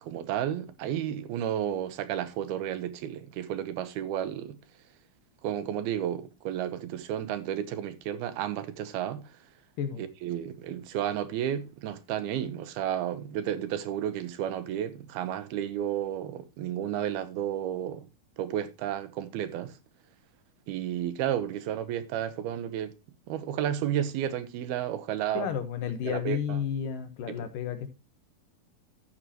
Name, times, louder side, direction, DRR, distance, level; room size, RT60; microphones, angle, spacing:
voice 1, 0.0-4.6 5.4-9.3 10.0-18.1 18.4-19.8 20.7-22.9 23.3-25.5 26.0-26.6 27.4-27.5, right 10 dB, 85° right, 3.0 m, -32 dB
voice 2, 25.3-27.9, left 8 dB, 70° left, 2.6 m, -32 dB
12.5 x 8.6 x 3.0 m
omnidirectional pair, 4.4 m